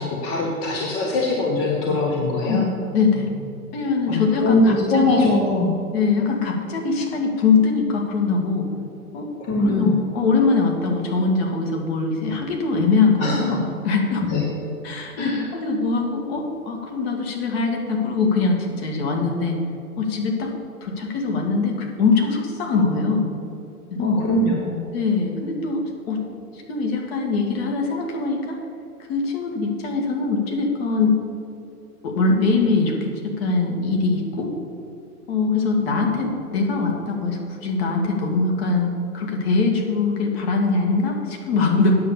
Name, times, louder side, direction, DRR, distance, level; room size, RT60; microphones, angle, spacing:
voice 1, 0.0-2.7 4.1-5.8 9.4-10.0 13.2-13.5 14.2-14.5 15.1-15.5 23.9-24.9, left 2 dB, 20° left, -1 dB, 1.0 m, -22 dB
voice 2, 2.9-3.3 3.7-4.6 4.9-5.3 5.9-8.7 9.1-9.3 9.6-14.2 14.8-19.6 20.0-20.5 20.8-23.3 23.9-24.2 24.9-25.8 26.1-26.2 26.5-28.6 29.1-31.2 32.0-34.5 35.3-42.0, left 4 dB, 40° left, 1 dB, 2.1 m, -22 dB
9.4 x 6.8 x 7.1 m, 2.6 s
hypercardioid pair, 130°, 46 cm